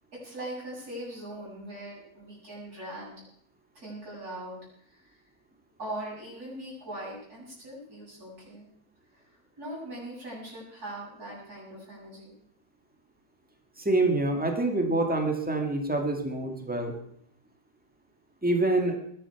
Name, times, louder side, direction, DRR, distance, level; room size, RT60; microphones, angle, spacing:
voice 1, 0.1-3.1 3.7-5.2 5.8-8.7 9.1-12.3, right 1 dB, 60° right, -5 dB, 8.4 m, -41 dB
voice 2, 13.8-17.0 18.4-19.0, right 2 dB, 5° right, 3 dB, 1.9 m, -26 dB
21.0 x 11.0 x 4.7 m, 0.68 s
omnidirectional pair, 1.8 m